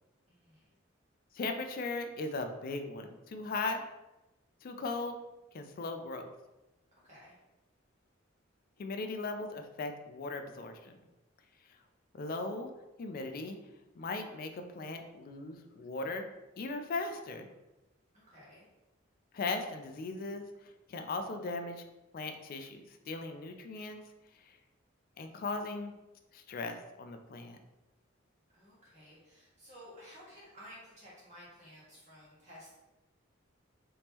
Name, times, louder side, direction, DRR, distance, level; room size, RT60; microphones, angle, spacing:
voice 1, 0.3-0.6 7.0-7.3 18.1-18.6 28.5-32.8, equal, 35° right, -8 dB, 1.3 m, -54 dB
voice 2, 1.3-3.8 4.6-5.2 5.5-6.3 8.8-11.0 12.1-12.7 13.0-13.6 14.0-16.3 16.6-17.5 19.3-20.4 20.9-21.8 22.1-24.0 24.5-24.6 25.2-25.9 26.3-27.6, left 3 dB, 45° left, 6 dB, 0.3 m, -38 dB
3.5 x 3.0 x 2.8 m, 1.0 s
head